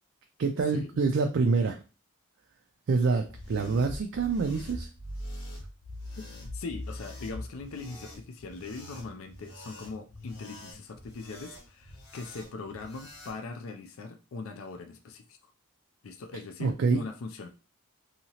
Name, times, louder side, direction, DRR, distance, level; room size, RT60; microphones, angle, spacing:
voice 1, 0.4-1.8 2.9-4.9 16.6-17.0, right 4 dB, 55° right, 4 dB, 0.3 m, -26 dB
sound 1, 3.2-13.4, left 1 dB, 90° left, 0.9 m, -43 dB
voice 2, 6.3-15.4 16.0-17.5, left 3 dB, 70° left, 6 dB, 0.4 m, -41 dB
2.8 x 2.8 x 2.8 m, 0.32 s
head